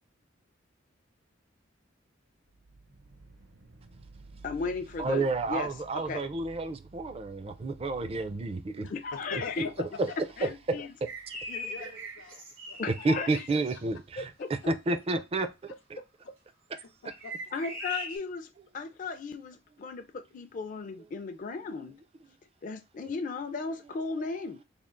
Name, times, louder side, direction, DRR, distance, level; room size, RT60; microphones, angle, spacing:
Hell's foundation A, 2.5-12.3, right 3 dB, 60° right, 0.7 m, -54 dB
voice 1, 4.4-6.2 8.9-9.7 10.4-10.9 12.8-13.3 14.2-14.5 17.5-22.0 22.6-24.6, left 4 dB, 40° left, 0.4 m, -36 dB
voice 2, 5.0-8.9 9.8-10.1 10.4-10.5 12.9-15.5 15.9-16.0, right 2 dB, 30° right, 0.4 m, -30 dB
voice 3, 8.8-10.0 10.7-10.9 11.5-12.8 17.0-17.3, left 5 dB, 80° left, 0.6 m, -42 dB
sound 1, 11.0-13.8 17.1-18.2, equal, 80° right, 1.5 m, -41 dB
3.5 x 2.4 x 3.7 m
head